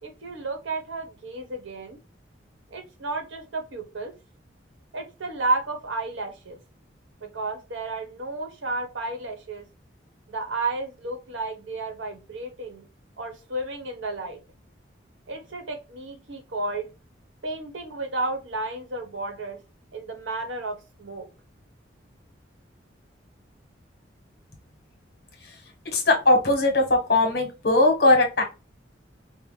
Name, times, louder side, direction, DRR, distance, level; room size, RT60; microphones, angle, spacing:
voice 1, 0.0-2.0 2.7-4.1 4.9-6.6 7.2-9.6 10.3-12.9 13.2-14.4 15.3-16.9 17.4-19.6 19.9-21.3, right 2 dB, 90° right, 5 dB, 1.1 m, -32 dB
voice 2, 25.9-28.4, left 2 dB, 55° left, 3 dB, 1.1 m, -20 dB
4.7 x 2.1 x 3.2 m, 0.29 s
head